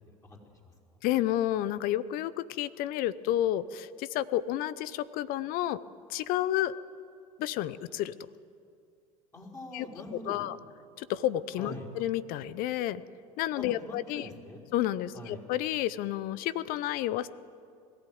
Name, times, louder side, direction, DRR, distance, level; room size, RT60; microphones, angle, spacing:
voice 1, 0.1-0.4 0.6-1.0 9.3-10.4 11.6-11.9 13.6-14.6 15.1-15.4, left 1 dB, 20° left, -1 dB, 5.0 m, -44 dB
voice 2, 1.0-5.8 6.1-6.7 7.4-8.1 9.7-9.9 10.3-10.6 11.0-13.0 13.4-14.3 14.7-17.3, left 13 dB, 55° left, 18 dB, 0.7 m, -30 dB
21.5 x 14.5 x 9.4 m, 2.3 s
hypercardioid pair, 75°, 18 cm